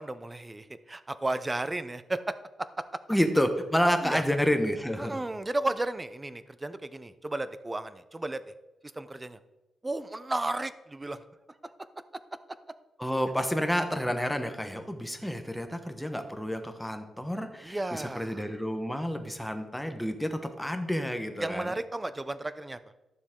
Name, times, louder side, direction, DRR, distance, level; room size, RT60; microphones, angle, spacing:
voice 1, 0.0-3.0 4.0-4.2 5.0-8.5 8.8-9.4 9.8-11.2 17.6-18.5 21.4-22.8, right 2 dB, 15° right, 13 dB, 0.5 m, -34 dB
voice 2, 3.1-5.2 13.0-21.7, equal, 5° left, 6 dB, 1.0 m, -29 dB
12.0 x 7.1 x 3.7 m, 1.1 s
cardioid pair, 115°, 0 cm